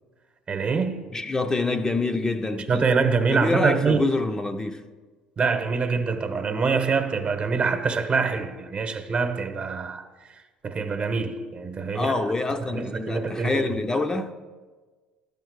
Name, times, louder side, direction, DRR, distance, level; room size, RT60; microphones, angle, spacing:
voice 1, 0.5-1.1 2.7-4.1 5.4-10.4 10.6-12.1 12.7-13.7, right 5 dB, 40° right, 1.1 m, -25 dB
voice 2, 1.1-2.8 3.3-4.8 11.9-14.3, left 3 dB, 20° left, 0.7 m, -26 dB
11.5 x 5.4 x 8.0 m
hypercardioid pair, 65°, 3 cm